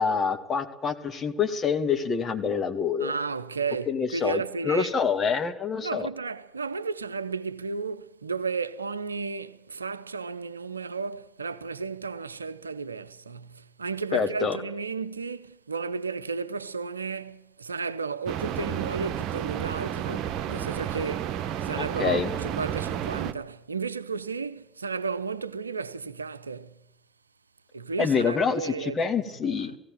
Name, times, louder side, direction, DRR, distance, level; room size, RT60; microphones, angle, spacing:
voice 1, 0.0-3.1 3.9-6.1 14.1-14.6 21.8-22.3 28.0-29.7, left 5 dB, 35° left, 2.4 m, -26 dB
voice 2, 3.0-4.9 5.8-26.7 27.7-29.0 29.4-29.8, right 4 dB, 85° right, 0.7 m, -33 dB
sound 1, 18.3-23.3, right 10 dB, 55° right, 1.1 m, -31 dB
17.5 x 17.5 x 9.2 m
figure-of-eight pair, 60°, 0 cm